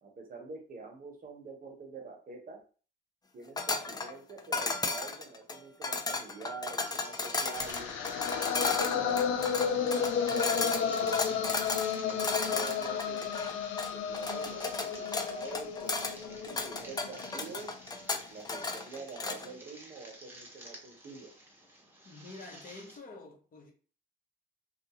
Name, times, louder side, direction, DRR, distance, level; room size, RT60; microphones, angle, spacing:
voice 1, 0.0-2.6 3.3-7.9 8.6-9.3 9.6-11.6 12.1-13.3 13.9-17.7 18.3-21.3, right 4 dB, 45° right, 0.9 m, -46 dB
sound 1, 3.6-19.5, left 3 dB, 20° left, 0.4 m, -35 dB
sound 2, 6.8-23.0, right 1 dB, 10° right, 0.8 m, -52 dB
sound 3, 7.6-17.6, left 7 dB, 85° left, 0.4 m, -33 dB
voice 2, 22.0-23.7, left 2 dB, 45° left, 0.8 m, -48 dB
2.3 x 2.3 x 2.9 m
cardioid pair, 90°, 20 cm